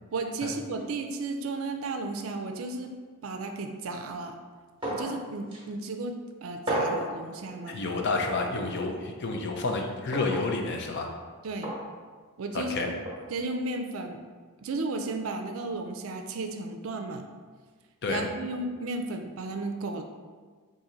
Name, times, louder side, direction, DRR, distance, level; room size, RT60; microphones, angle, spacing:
voice 1, 0.1-2.9 3.2-4.4 4.9-7.8 11.4-11.7 12.4-12.9 13.3-14.2 14.6-17.3 18.1-20.0, right 2 dB, 65° right, 5 dB, 0.4 m, -34 dB
sound 1, 4.8-5.2 5.5-5.6 6.7-7.1 8.2-8.4 10.1-10.5 11.6-11.8 13.0-13.2, right 1 dB, 25° right, 1.0 m, -31 dB
voice 2, 7.7-11.1 12.5-12.9 18.0-18.2, left 3 dB, 50° left, 2 dB, 0.5 m, -30 dB
4.2 x 2.6 x 3.8 m, 1.5 s
head